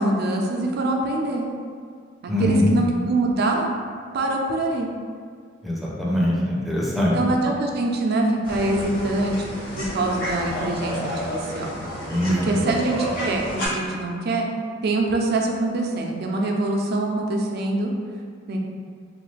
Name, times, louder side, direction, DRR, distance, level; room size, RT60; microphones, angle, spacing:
voice 1, 0.0-1.4 2.2-3.7 4.1-4.9 6.9-9.3 9.8-11.8 12.3-14.5 14.8-17.9 18.5-18.6, right 2 dB, 55° right, 1 dB, 0.4 m, -24 dB
voice 2, 2.3-2.7 5.6-7.1 12.1-12.5, equal, ahead, -6 dB, 0.5 m, -22 dB
sound 1, 8.4-13.7, equal, 50° left, 0.8 m, -30 dB
3.1 x 2.3 x 3.2 m, 2.1 s
head